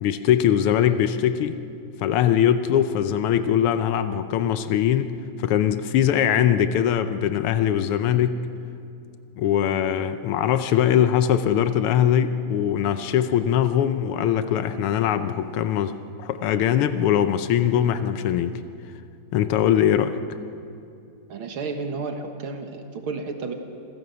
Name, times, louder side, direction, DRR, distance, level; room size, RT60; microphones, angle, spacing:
voice 1, 0.0-1.6 2.0-5.1 5.4-8.4 9.4-18.6 19.3-20.2, left 9 dB, 90° left, 10 dB, 1.7 m, -21 dB
voice 2, 21.3-23.5, right 4 dB, 70° right, 5 dB, 2.3 m, -32 dB
27.0 x 16.0 x 6.9 m, 2.6 s
omnidirectional pair, 2.4 m